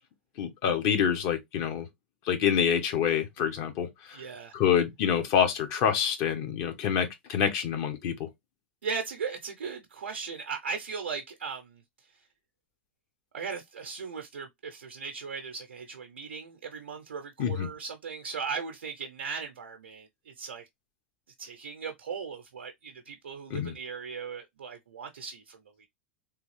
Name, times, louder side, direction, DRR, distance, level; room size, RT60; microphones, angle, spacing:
voice 1, 0.4-1.9 2.3-4.2 4.5-8.3 17.4-17.7 23.5-23.7, left 8 dB, 50° left, 1.0 m, -27 dB
voice 2, 4.1-4.5 8.8-11.8 13.3-20.7 21.4-25.9, right 5 dB, 85° right, 0.5 m, -38 dB
3.4 x 2.4 x 3.1 m
hypercardioid pair, 100°, 6 cm